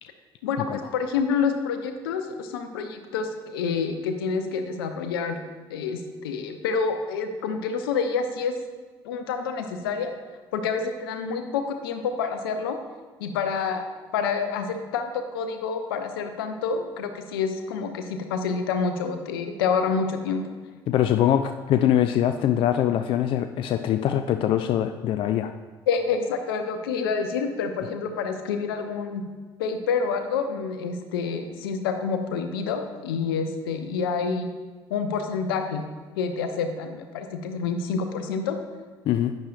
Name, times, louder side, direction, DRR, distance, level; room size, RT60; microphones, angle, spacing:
voice 1, 0.4-5.4 5.7-8.5 9.0-10.1 10.5-12.8 13.2-13.9 14.1-20.5 25.9-29.2 29.6-34.5 34.9-35.8 36.2-38.6, left 5 dB, 70° left, 7 dB, 0.8 m, -28 dB
voice 2, 20.9-25.5 39.1-39.3, left 11 dB, 45° left, 9 dB, 0.4 m, -23 dB
11.0 x 9.0 x 2.5 m, 1.5 s
figure-of-eight pair, 55°, 13 cm